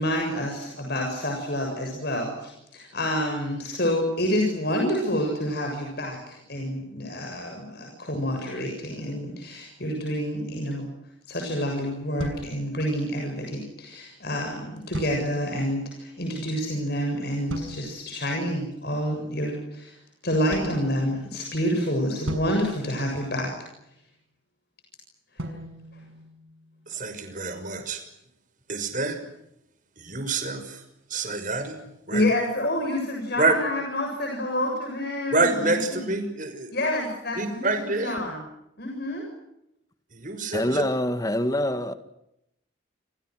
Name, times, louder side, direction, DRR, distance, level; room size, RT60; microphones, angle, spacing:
voice 1, 0.0-10.9 11.3-20.0 20.2-23.5 25.4-25.5 32.1-36.1 36.7-38.4 38.8-39.3, equal, 50° left, 7.2 m, -28 dB
sound 1, 12.2-13.3 14.9-15.7 17.5-18.2 20.5-21.6 22.3-23.7 25.4-26.9, equal, 85° right, 6.8 m, -38 dB
voice 2, 26.9-28.0 28.7-29.2 30.0-30.8 31.1-32.3 33.4-33.5 35.3-36.7 37.3-38.2 40.1-40.8, right 3 dB, 40° right, 6.1 m, -27 dB
voice 3, 40.5-41.9, left 1 dB, 15° left, 1.9 m, -25 dB
30.0 x 29.0 x 6.3 m
head